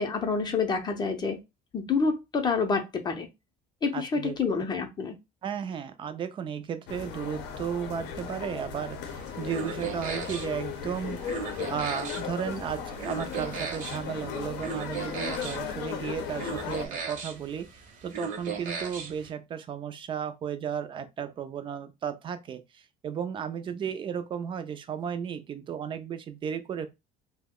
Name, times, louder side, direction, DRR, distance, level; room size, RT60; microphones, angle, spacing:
voice 1, 0.0-1.4 1.7-3.3 3.8-5.2, left 4 dB, 25° left, 0.6 m, -28 dB
voice 2, 3.9-4.4 5.4-26.9, right 8 dB, 30° right, 0.4 m, -34 dB
sound 1, 6.9-16.9, left 7 dB, 75° left, 0.6 m, -37 dB
sound 2, 9.1-19.3, right 4 dB, 45° right, 0.7 m, -38 dB
2.8 x 2.1 x 3.6 m
cardioid pair, 145°, 18 cm